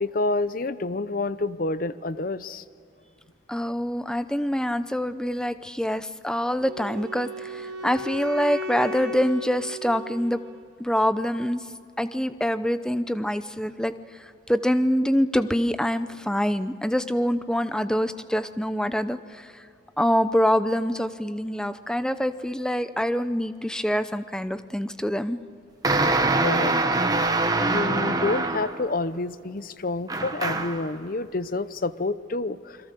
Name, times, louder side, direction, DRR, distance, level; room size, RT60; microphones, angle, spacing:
voice 1, 0.0-2.6 26.4-26.7 27.6-32.8, left 3 dB, 45° left, 15 dB, 0.6 m, -28 dB
voice 2, 3.5-10.4 10.8-11.7 12.0-19.7 20.0-25.4, equal, 5° left, 12 dB, 0.6 m, -25 dB
Wind instrument woodwind instrument, 6.6-10.7, left 1 dB, 80° right, 2.2 m, -36 dB
sound 1, 25.8-28.9 30.1-30.9, right 2 dB, 20° right, 1.1 m, -24 dB
28.0 x 22.0 x 6.8 m, 2.5 s
head